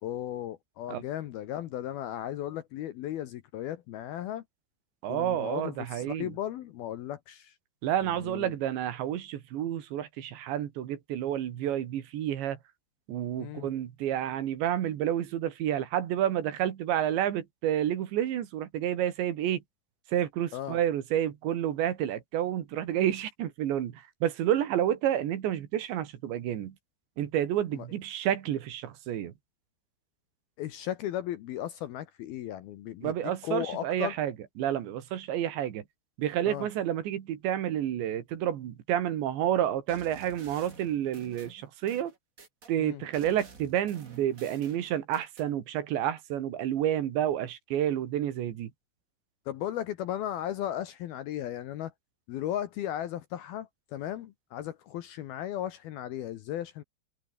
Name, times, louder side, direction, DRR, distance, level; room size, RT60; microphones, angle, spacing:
voice 1, 0.0-4.4 5.1-7.5 8.2-8.5 13.4-13.7 20.5-20.8 27.8-27.9 30.6-33.1 33.4-34.1 36.5-36.7 42.8-43.0 49.5-51.9 52.3-56.8, left 12 dB, 70° left, 2.5 m, -36 dB
voice 2, 5.0-6.4 7.8-12.6 13.1-19.6 20.1-26.8 27.2-29.3 33.0-35.9 36.2-42.1 42.7-48.7, right 11 dB, 70° right, 4.2 m, -30 dB
sound 1, 39.9-42.7 43.1-45.5, right 4 dB, 30° right, 1.5 m, -51 dB
omnidirectional pair, 5.4 m